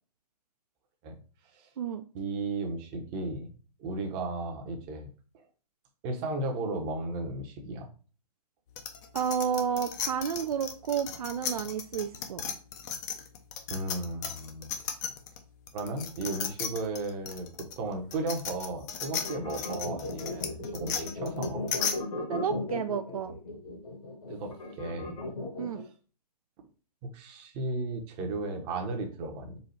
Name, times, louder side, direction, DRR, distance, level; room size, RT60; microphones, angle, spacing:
voice 1, 2.1-3.5 3.8-5.1 5.3-5.4 6.0-7.9 13.7-14.7 15.7-21.8 24.3-25.2 27.1-29.6, right 2 dB, 20° right, 4 dB, 0.8 m, -35 dB
sound 1, 8.8-15.4 15.7-21.9, left 7 dB, 25° left, 0.5 m, -35 dB
voice 2, 9.1-12.4 22.3-23.3 25.6-25.8, right 7 dB, 60° right, 8 dB, 0.4 m, -31 dB
sound 2, 19.1-25.9, left 2 dB, 65° left, 1.5 m, -36 dB
4.1 x 2.4 x 4.3 m, 0.37 s
hypercardioid pair, 140°, 21 cm